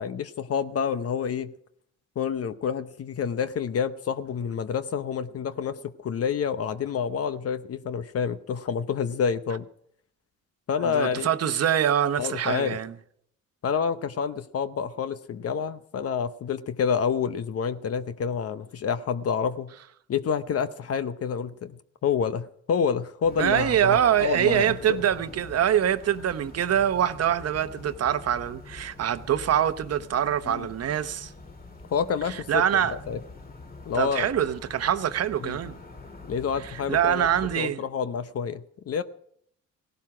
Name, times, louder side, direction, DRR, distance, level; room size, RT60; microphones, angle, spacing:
voice 1, 0.0-1.5 2.2-9.6 10.7-11.3 12.2-12.8 13.6-19.7 20.1-21.7 22.0-25.0 30.5-30.7 31.9-32.6 32.9-33.2 33.9-34.3 35.4-35.6 36.3-37.3 37.6-39.0, left 7 dB, 50° left, 0.8 m, -28 dB
voice 2, 10.8-12.9 23.4-31.3 32.3-33.0 33.9-35.8 36.6-37.8, right 10 dB, 55° right, 1.0 m, -24 dB
sound 1, 23.2-37.6, left 3 dB, 30° left, 2.4 m, -45 dB
17.0 x 12.0 x 4.9 m
cardioid pair, 90°, 30 cm